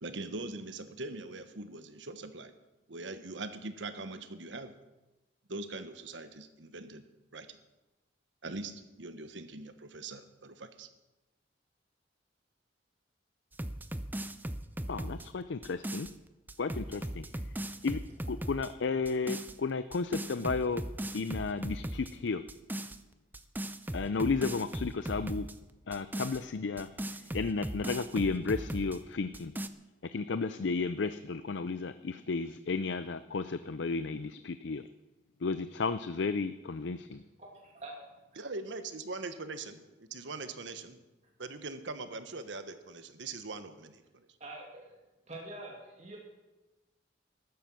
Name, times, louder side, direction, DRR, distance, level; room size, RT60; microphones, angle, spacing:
voice 1, 0.0-2.5 2.9-4.7 5.5-7.0 7.3-7.6 8.4-10.9 38.4-41.0 41.4-44.0, right 3 dB, 80° right, 10 dB, 1.2 m, -42 dB
sound 1, 13.5-16.1 16.5-18.7 19.1-19.6 19.9-22.1 22.5-23.0 23.3-25.6 25.9-29.0 29.3-29.7, right 1 dB, 10° right, 0.5 m, -38 dB
voice 2, 14.9-16.1 16.6-17.3 17.8-18.0 18.3-20.8 21.1-22.4 23.9-25.5 25.9-26.9 27.2-29.5 30.1-34.9 35.4-37.2, left 4 dB, 75° left, 12 dB, 0.5 m, -33 dB
voice 3, 37.4-38.0 44.4-44.9 45.3-46.2, right 2 dB, 40° right, -2 dB, 2.5 m, -46 dB
14.5 x 11.5 x 6.2 m, 1.1 s
head